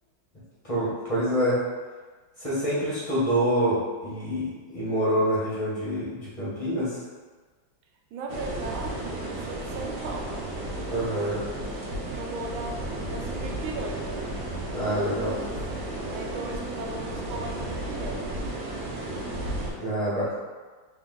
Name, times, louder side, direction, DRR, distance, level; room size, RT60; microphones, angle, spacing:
voice 1, 0.6-1.6 2.4-7.0 10.9-11.4 14.7-15.3 19.8-20.4, equal, 35° left, -10 dB, 0.5 m, -26 dB
voice 2, 8.1-10.5 11.5-14.3 16.1-18.4, right 2 dB, 85° right, 1 dB, 1.4 m, -37 dB
sound 1, 8.3-19.7, right 1 dB, 65° right, 1.0 m, -33 dB
3.5 x 2.6 x 3.6 m, 1.4 s
omnidirectional pair, 2.2 m